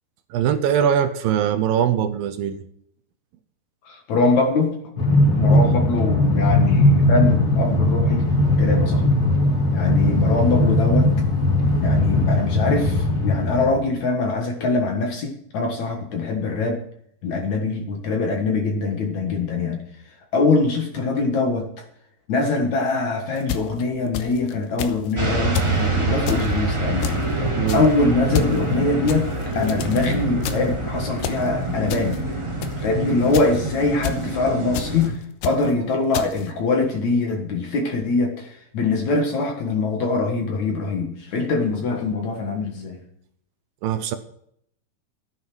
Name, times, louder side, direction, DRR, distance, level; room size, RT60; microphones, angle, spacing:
voice 1, 0.3-2.6 5.5-5.8 27.6-27.8 43.8-44.2, right 9 dB, 75° right, 9 dB, 2.4 m, -22 dB
voice 2, 3.8-4.7 5.4-9.0 9.7-11.1 11.8-16.8 17.2-19.8 20.3-21.7 22.3-27.1 27.4-29.3 29.6-32.2 32.8-43.0, left 3 dB, 55° left, 3 dB, 2.5 m, -23 dB
Train, 5.0-13.8, left 1 dB, 25° left, 3.0 m, -19 dB
sound 1, 23.4-24.5 24.8-25.1 25.6-25.8 26.3-26.5 27.0-27.3 27.7-27.9 28.3-28.6 29.1-30.2 30.4-30.8 31.2-31.5 31.9-32.2 32.6-32.9 33.3-33.6 34.0-34.3 34.7-35.1 35.4-35.7 36.1-36.5, left 9 dB, 90° left, 3.0 m, -30 dB
sound 2, 25.1-35.1, right 2 dB, 20° right, 0.7 m, -25 dB
13.5 x 9.6 x 6.1 m, 0.69 s
omnidirectional pair, 4.5 m